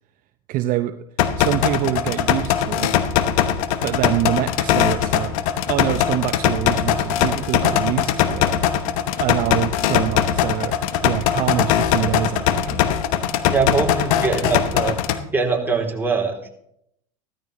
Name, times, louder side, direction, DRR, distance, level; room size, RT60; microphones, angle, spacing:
voice 1, 0.5-1.0 1.4-3.0 3.8-8.5 9.2-10.8 11.0-12.9, right 13 dB, 50° right, 10 dB, 0.6 m, -25 dB
sound 1, 1.2-15.2, left 10 dB, 65° left, 1.0 m, -21 dB
voice 2, 13.5-14.9 15.3-16.5, right 4 dB, 10° right, -1 dB, 3.1 m, -22 dB
15.5 x 13.5 x 3.1 m, 0.76 s
hypercardioid pair, 80°, 18 cm